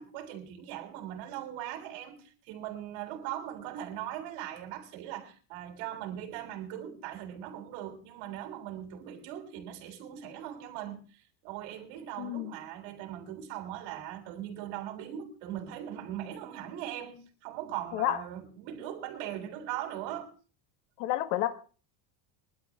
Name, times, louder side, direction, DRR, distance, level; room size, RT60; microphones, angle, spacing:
voice 1, 0.0-20.3, right 11 dB, 70° right, 3.5 m, -40 dB
voice 2, 12.2-12.5 17.9-18.2 21.0-21.5, left 14 dB, 85° left, 1.3 m, -30 dB
21.5 x 12.0 x 3.5 m
cardioid pair, 155°, 50 cm